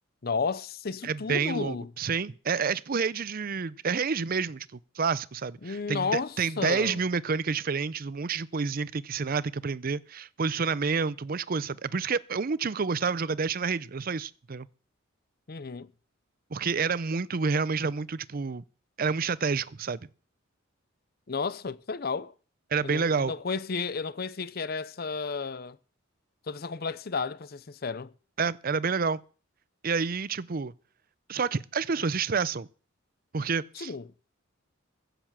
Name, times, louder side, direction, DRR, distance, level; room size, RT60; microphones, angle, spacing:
voice 1, 0.2-1.9 5.6-7.0 15.5-15.9 21.3-22.3 22.8-25.8 26.5-28.1 33.7-34.1, left 4 dB, 45° left, 0.6 m, -32 dB
voice 2, 1.0-4.7 5.0-14.7 16.5-18.6 19.0-20.0 22.7-23.3 28.4-29.2 29.8-30.7 31.3-32.7 33.3-33.9, right 5 dB, 45° right, 0.5 m, -29 dB
15.5 x 6.8 x 7.4 m
head